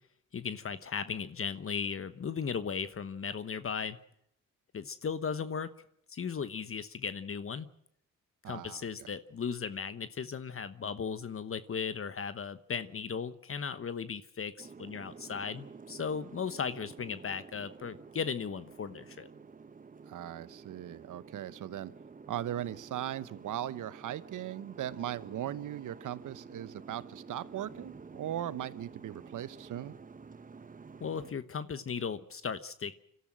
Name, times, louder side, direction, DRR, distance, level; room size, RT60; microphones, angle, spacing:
voice 1, 0.3-4.0 4.7-5.7 6.1-7.7 8.5-19.3 31.0-32.9, left 6 dB, 45° left, 13 dB, 1.1 m, -36 dB
voice 2, 8.4-9.1 20.1-21.9 22.3-29.9, right 11 dB, 75° right, 16 dB, 1.0 m, -38 dB
Boat Water vehicle, 14.6-31.3, right 5 dB, 25° right, 0.9 m, -51 dB
26.5 x 13.0 x 7.6 m, 0.72 s
cardioid pair, 70°, 32 cm